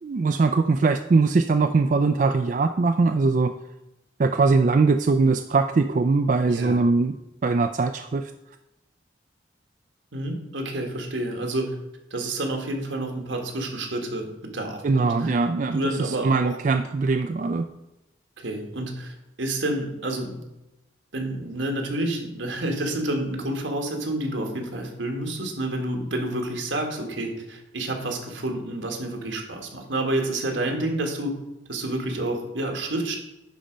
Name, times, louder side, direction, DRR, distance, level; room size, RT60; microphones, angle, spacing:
voice 1, 0.0-3.5 4.2-7.2 7.4-8.3 14.8-17.6, right 3 dB, 40° right, 8 dB, 0.3 m, -21 dB
voice 2, 10.1-11.7 12.1-15.3 15.7-16.5 18.4-20.4 21.1-31.3 31.7-33.2, right 1 dB, 80° right, 3 dB, 1.7 m, -29 dB
10.5 x 4.3 x 5.1 m, 0.94 s
head